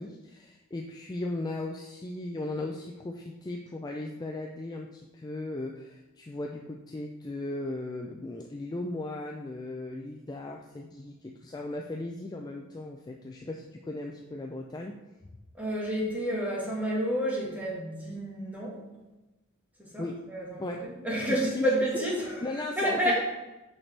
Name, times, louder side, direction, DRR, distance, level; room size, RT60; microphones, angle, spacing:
voice 1, 0.0-15.0 20.0-20.2 20.6-20.9 21.2-21.7 21.9-22.1 22.4-23.2, left 2 dB, 20° left, 1 dB, 0.3 m, -37 dB
voice 2, 15.5-18.8 19.8-20.0 20.3-22.3 22.8-23.2, equal, 10° right, -5 dB, 1.8 m, -29 dB
6.4 x 5.9 x 3.3 m, 1.1 s
head